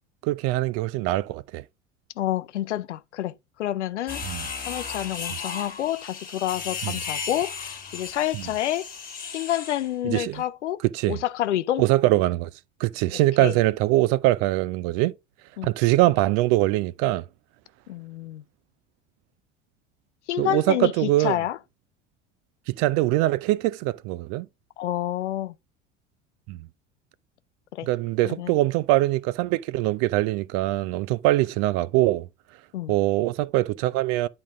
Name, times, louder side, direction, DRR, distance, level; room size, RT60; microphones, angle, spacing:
voice 1, 0.2-1.6 4.2-4.5 6.8-7.0 8.3-8.4 10.0-10.4 10.9-11.2 11.8-12.5 12.8-15.1 15.6-17.2 20.4-21.4 22.7-24.5 26.5-26.7 27.8-32.3 32.9-34.3, right 17 dB, 45° right, 0.4 m, -23 dB
voice 2, 2.2-3.3 3.6-4.2 4.6-8.9 9.3-10.8 11.1-11.8 13.4-13.5 15.6-15.7 17.9-18.4 20.3-21.6 24.8-25.5 27.7-27.9 28.2-28.5 32.7-32.9, left 13 dB, 70° left, 0.6 m, -28 dB
sound 1, 4.1-9.9, left 6 dB, 25° left, 1.8 m, -35 dB
10.0 x 3.8 x 3.6 m
figure-of-eight pair, 70°, 36 cm